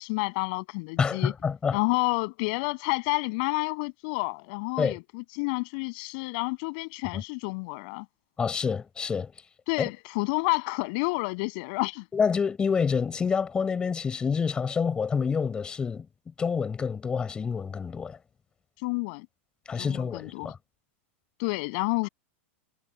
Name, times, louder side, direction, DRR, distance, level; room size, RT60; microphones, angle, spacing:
voice 1, 0.0-1.3 1.7-8.0 9.7-12.0 18.8-19.3 19.7-20.5 21.4-22.1, left 31 dB, 40° left, 7.9 m, -29 dB
voice 2, 1.0-1.8 4.8-5.0 8.4-9.3 12.1-16.1 16.4-18.2 19.7-20.6, left 6 dB, 10° left, 6.7 m, -27 dB
supercardioid pair, 165°, 7 cm